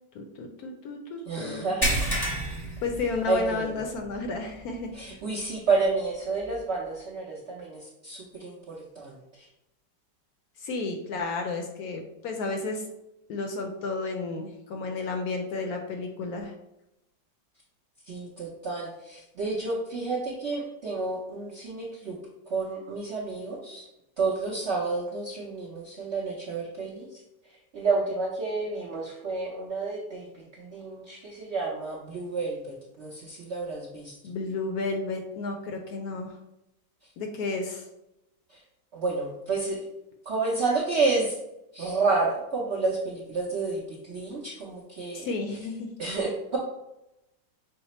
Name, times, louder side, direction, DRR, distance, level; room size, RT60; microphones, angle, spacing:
voice 1, 0.1-1.7 2.8-4.9 10.6-12.8 13.3-16.5 34.2-36.4 37.2-37.8 45.1-45.9, left 3 dB, 70° left, 3 dB, 0.9 m, -32 dB
voice 2, 1.3-2.2 3.3-3.7 4.9-9.4 18.1-22.2 22.5-23.9 24.2-27.1 27.7-34.1 38.5-38.6 38.9-39.8 40.3-41.3 41.7-45.4 46.0-46.6, right 3 dB, 70° right, -2 dB, 0.6 m, -30 dB
sound 1, 1.8-3.7 4.0-4.3 4.7-4.8 6.5-6.6, right 1 dB, 20° left, 0.7 m, -29 dB
5.6 x 2.0 x 4.1 m, 0.90 s
omnidirectional pair, 1.9 m